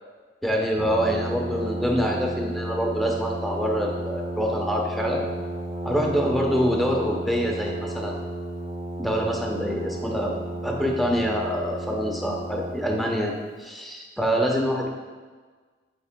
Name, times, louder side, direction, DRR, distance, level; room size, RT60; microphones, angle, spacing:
voice 1, 0.4-5.3 5.9-8.2 9.0-10.3 10.6-13.3 13.6-14.9, equal, ahead, -1 dB, 0.8 m, -25 dB
Brass instrument, 0.8-13.0, right 1 dB, 35° right, 1.6 m, -33 dB
10.0 x 4.7 x 2.2 m, 1.4 s
head